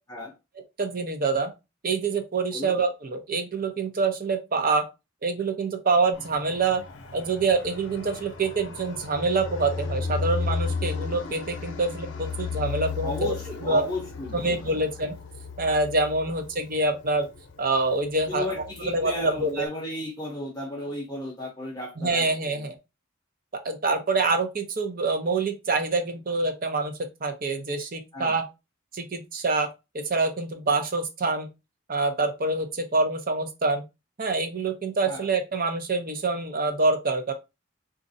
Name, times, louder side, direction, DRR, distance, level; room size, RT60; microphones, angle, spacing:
voice 1, 0.8-1.5 1.8-4.8 5.2-6.8 7.1-13.3 13.6-13.8 14.4-15.1 15.6-17.3 17.6-18.5 18.8-19.7 22.0-22.8 23.6-28.4 28.9-29.7 29.9-31.5 31.9-33.8 34.2-37.3, right 3 dB, 45° right, 0.6 m, -26 dB
Fixed-wing aircraft airplane, 6.1-19.6, left 4 dB, 65° left, 0.7 m, -35 dB
voice 2, 13.0-14.8 18.3-22.7 28.1-28.4 35.1-35.3, left 1 dB, 20° left, 0.6 m, -34 dB
4.0 x 2.5 x 2.6 m
head